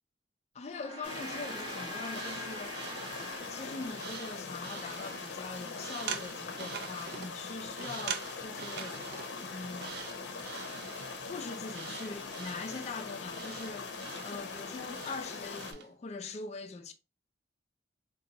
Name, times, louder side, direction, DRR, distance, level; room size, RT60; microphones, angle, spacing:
voice 1, 0.5-2.8 3.5-9.1 9.4-10.2 11.2-13.9 14.2-16.9, left 4 dB, 40° left, 0.4 m, -42 dB
Gong, 0.6-5.2, right 1 dB, 25° right, 0.7 m, -45 dB
sound 1, 1.0-15.7, left 4 dB, 75° left, 0.7 m, -42 dB
sound 2, 2.0-15.9, right 7 dB, 65° right, 0.4 m, -45 dB
3.9 x 2.3 x 2.7 m
head